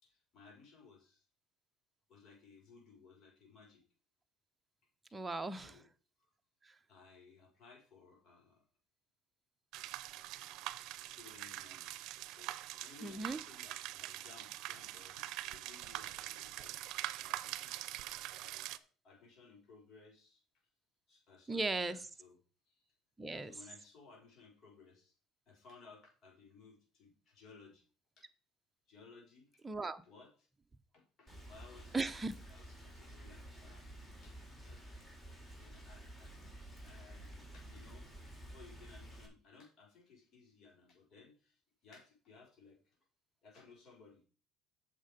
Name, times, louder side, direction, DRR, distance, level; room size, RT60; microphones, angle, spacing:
voice 1, 0.0-1.2 2.1-3.8 5.6-5.9 6.9-8.6 11.0-11.9 12.3-16.8 17.2-17.9 18.3-20.4 21.1-22.4 22.7-22.9 23.4-25.1 25.5-27.8 28.2-28.3 28.9-29.6 30.0-30.5 30.9-32.0 32.5-33.9 34.2-34.3 34.6-34.8 35.6-36.4 36.8-38.1 38.4-42.8 43.4-44.2, left 4 dB, 50° left, 5.7 m, -60 dB
voice 2, 5.1-5.8 13.0-13.4 21.5-22.0 23.2-23.5 29.6-30.0 31.9-32.3, right 3 dB, 15° right, 0.9 m, -37 dB
sound 1, 9.7-18.8, right 15 dB, 70° right, 0.6 m, -44 dB
Rain, 31.3-39.3, right 1 dB, 15° left, 3.9 m, -52 dB
8.7 x 6.7 x 5.3 m
supercardioid pair, 95°, 0 cm